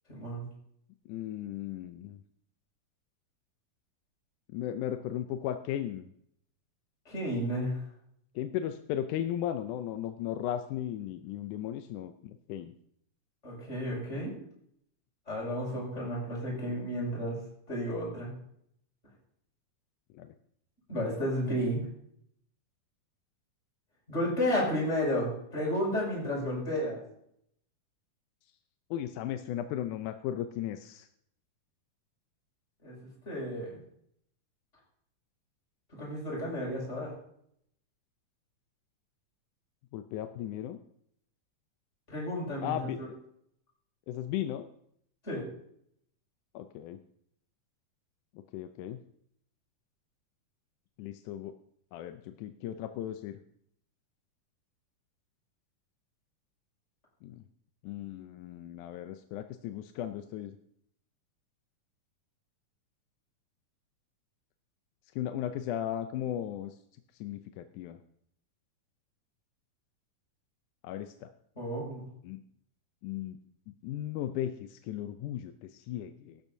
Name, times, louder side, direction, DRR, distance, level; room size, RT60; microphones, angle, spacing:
voice 1, 0.1-0.5 7.0-7.8 13.4-14.3 15.3-17.4 17.7-18.3 20.9-21.8 24.1-27.0 32.8-32.9 33.2-33.7 35.9-37.1 42.1-43.1 45.2-45.4 71.5-72.1, equal, 20° left, -4 dB, 6.3 m, -32 dB
voice 2, 1.1-2.2 4.5-6.1 8.4-12.7 20.1-20.3 28.9-31.1 39.9-40.8 42.6-43.0 44.1-44.7 46.5-47.0 48.5-49.0 51.0-51.5 51.9-53.4 57.2-57.4 57.8-60.6 65.2-66.7 67.2-68.0 70.8-71.3 72.2-72.4 73.0-73.4 73.8-76.4, left 11 dB, 80° left, 8 dB, 2.0 m, -36 dB
16.5 x 12.5 x 2.7 m, 0.70 s
omnidirectional pair, 3.8 m